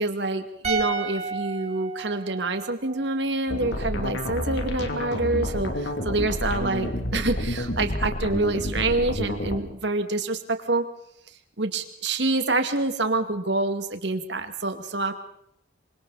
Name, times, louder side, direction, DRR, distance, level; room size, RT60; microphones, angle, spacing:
voice 1, 0.0-10.8 11.6-15.1, right 2 dB, 65° right, 7 dB, 2.3 m, -27 dB
sound 1, 0.6-3.9 4.1-4.3, right 6 dB, 35° right, 3.1 m, -33 dB
sound 2, 3.5-9.6, left 1 dB, 65° left, 2.8 m, -29 dB
26.5 x 25.5 x 4.2 m, 0.71 s
head